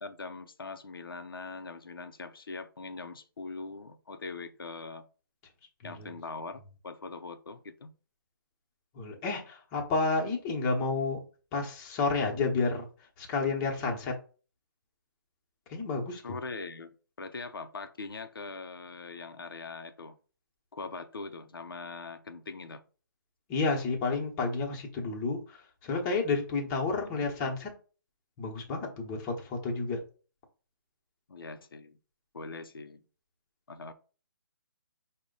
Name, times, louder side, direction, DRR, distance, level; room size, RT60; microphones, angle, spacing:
voice 1, 0.0-5.1 5.8-7.9 16.2-20.1 20.7-22.8 27.0-27.3 31.3-32.0 32.3-33.0 33.7-33.9, left 3 dB, 90° left, 0.6 m, -42 dB
voice 2, 8.9-11.2 11.5-12.9 13.2-14.2 15.7-16.4 23.5-27.7 28.4-30.0, left 3 dB, 20° left, 0.9 m, -31 dB
4.9 x 2.2 x 3.8 m
hypercardioid pair, 150°, 12 cm